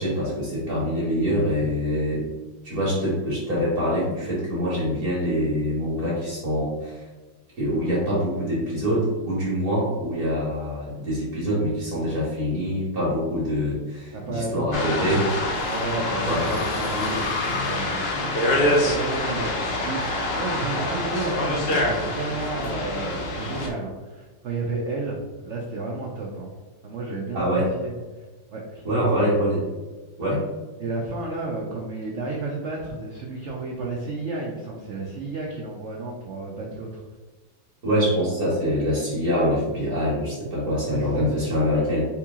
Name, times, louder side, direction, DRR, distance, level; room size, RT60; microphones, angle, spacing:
voice 1, 0.0-2.2 2.6-7.0 7.6-15.3 16.2-16.4 27.3-27.7 28.8-29.6 30.2-30.4 37.8-42.1, equal, 55° right, -7 dB, 1.7 m, -24 dB
voice 2, 14.1-14.8 15.7-26.5 26.8-28.2 28.5-28.8 29.1-29.2 30.2-30.3 30.8-37.0 40.8-41.3, right 2 dB, 85° right, -2 dB, 0.6 m, -32 dB
sound 1, 14.7-23.7, left 1 dB, 70° left, 0.5 m, -26 dB
4.6 x 3.0 x 3.6 m, 1.3 s
omnidirectional pair, 2.1 m